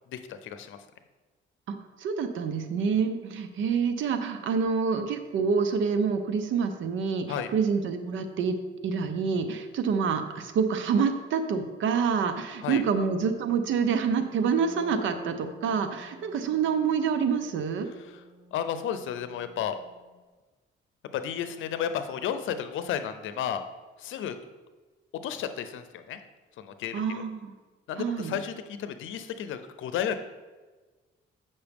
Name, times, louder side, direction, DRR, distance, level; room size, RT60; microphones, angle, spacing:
voice 1, 0.1-0.8 7.3-7.5 12.6-12.8 18.0-18.2 18.5-19.8 21.1-23.6 24.0-24.4 25.2-26.2 26.6-27.2 27.9-30.2, left 9 dB, 80° left, 10 dB, 0.6 m, -33 dB
voice 2, 1.7-8.5 8.8-17.9 26.9-27.5 28.0-28.4, right 6 dB, 75° right, 8 dB, 0.7 m, -27 dB
Wind instrument woodwind instrument, 14.4-20.1, left 1 dB, 25° left, 1.8 m, -52 dB
8.1 x 5.4 x 3.5 m, 1.3 s
cardioid pair, 90°, 20 cm